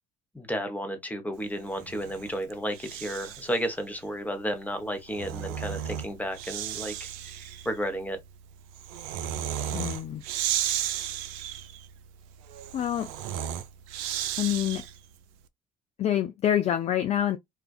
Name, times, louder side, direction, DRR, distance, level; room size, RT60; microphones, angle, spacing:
voice 1, 0.3-7.4 7.6-8.2, equal, 10° left, 0.9 m, -32 dB
Breathing, 1.6-3.6 4.9-15.1, right 10 dB, 60° right, 0.4 m, -34 dB
voice 2, 9.7-10.2 12.7-13.1 14.4-14.8 16.0-17.4, left 11 dB, 35° left, 0.3 m, -26 dB
2.5 x 2.2 x 2.3 m
figure-of-eight pair, 55°, 20 cm